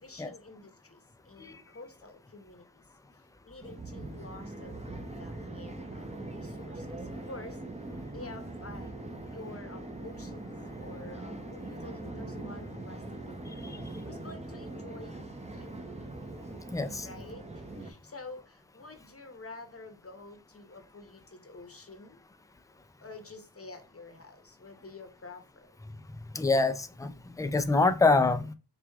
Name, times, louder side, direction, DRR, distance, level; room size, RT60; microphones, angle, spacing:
voice 1, 0.0-2.8 3.5-6.9 7.3-7.6 8.1-8.9 9.2-13.7 14.0-15.8 17.0-17.5 17.8-22.2 23.0-25.7, left 3 dB, 35° left, 0.9 m, -48 dB
sound 1, 3.6-17.9, right 2 dB, 15° right, 0.7 m, -41 dB
voice 2, 16.7-17.1 26.3-28.5, left 3 dB, 10° left, 0.4 m, -26 dB
4.6 x 2.4 x 3.4 m
wide cardioid pair, 60°, 40 cm